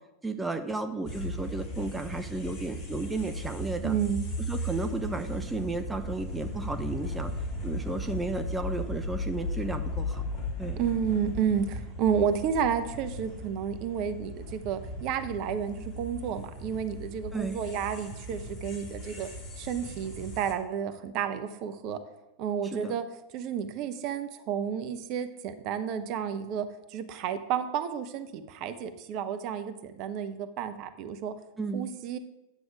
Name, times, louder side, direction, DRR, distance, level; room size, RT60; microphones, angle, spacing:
voice 1, 0.2-4.0 4.5-7.3 7.6-10.2 10.6-10.8 17.3-17.6 22.6-22.9 31.6-31.9, right 2 dB, 10° right, 7 dB, 0.7 m, -33 dB
sound 1, 1.0-20.5, left 1 dB, 35° left, 2.4 m, -37 dB
voice 2, 3.8-4.2 10.8-19.3 19.6-22.0 22.4-23.0 23.3-31.3 31.7-32.2, right 8 dB, 40° right, 10 dB, 0.8 m, -31 dB
9.9 x 7.9 x 4.8 m, 0.93 s
figure-of-eight pair, 90°, 0 cm